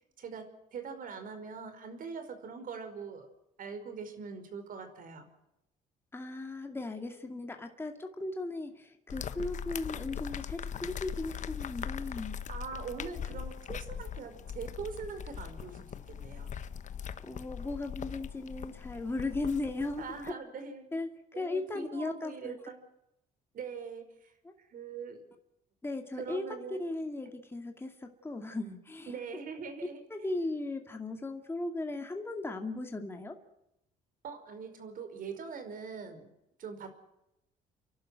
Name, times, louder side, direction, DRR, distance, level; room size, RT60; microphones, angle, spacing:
voice 1, 0.2-3.3 3.6-5.3 12.5-16.5 20.0-20.9 21.3-22.8 23.5-24.3 24.6-25.2 26.2-26.8 29.1-30.3 34.2-36.3 36.6-36.9, right 5 dB, 55° right, 8 dB, 5.2 m, -42 dB
voice 2, 6.1-12.4 17.2-20.3 20.9-21.1 21.4-22.6 24.4-24.5 25.8-26.4 26.8-29.1 30.1-33.4, left 2 dB, 15° left, 4 dB, 2.4 m, -37 dB
sound 1, 9.1-20.3, left 8 dB, 45° left, 1.2 m, -41 dB
30.0 x 12.0 x 9.3 m, 0.85 s
cardioid pair, 110°, 17 cm